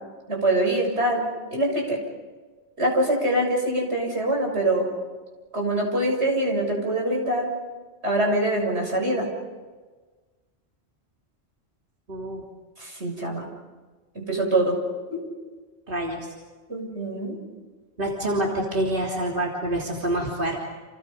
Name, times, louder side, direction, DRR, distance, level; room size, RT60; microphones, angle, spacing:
voice 1, 0.3-1.2 1.5-2.0 2.8-4.9 5.5-7.5 8.0-9.3 12.8-13.5 14.2-14.8 15.1-15.2 16.7-17.4, right 1 dB, 85° right, 0 dB, 7.2 m, -24 dB
voice 2, 12.1-12.4 15.9-16.3 18.0-20.6, right 1 dB, 50° right, -2 dB, 3.5 m, -27 dB
30.0 x 29.0 x 5.3 m, 1.3 s
omnidirectional pair, 1.1 m